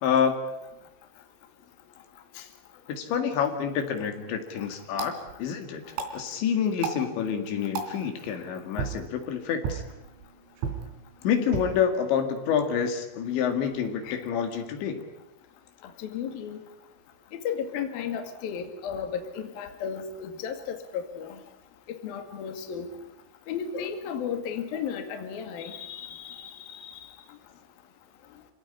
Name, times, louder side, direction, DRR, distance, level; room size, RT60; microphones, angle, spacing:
voice 1, 0.0-0.4 2.9-5.8 6.1-9.8 11.2-15.0, left 7 dB, 75° left, 6 dB, 4.4 m, -27 dB
sound 1, 3.9-13.9, right 5 dB, 85° right, 5.4 m, -39 dB
voice 2, 16.0-16.6 17.5-21.3 22.0-22.9 23.5-26.9, left 7 dB, 60° left, 6 dB, 3.7 m, -34 dB
27.5 x 18.0 x 10.0 m, 0.92 s
omnidirectional pair, 5.3 m